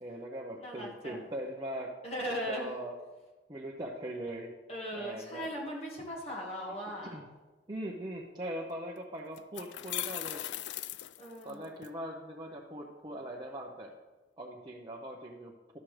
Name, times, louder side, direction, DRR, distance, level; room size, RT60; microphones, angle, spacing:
voice 1, 0.0-1.9 2.3-2.9 3.5-4.5 4.9-5.5 7.0-7.3 7.7-10.4 11.4-13.9 14.4-15.8, right 1 dB, 25° right, -2 dB, 0.8 m, -41 dB
voice 2, 0.6-1.2 2.0-2.7 4.7-7.1 11.2-11.6, equal, 35° left, -2 dB, 1.6 m, -38 dB
sound 1, 8.7-8.8 9.4-11.9, left 13 dB, 70° left, 0.3 m, -39 dB
11.5 x 7.4 x 3.2 m, 1.2 s
head